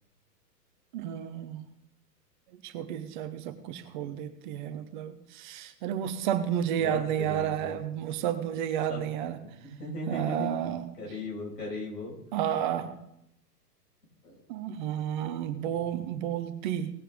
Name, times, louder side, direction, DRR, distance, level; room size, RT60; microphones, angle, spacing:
voice 1, 0.9-1.6 2.6-9.4 10.1-10.8 12.3-12.9 14.5-16.9, right 10 dB, 30° right, 9 dB, 0.9 m, -31 dB
voice 2, 6.8-7.7 8.9-9.0 9.6-10.5 11.0-12.1 14.2-14.4 16.0-16.2, left 2 dB, 75° left, -2 dB, 6.0 m, -37 dB
18.0 x 8.3 x 3.7 m, 0.76 s
figure-of-eight pair, 110°, 49 cm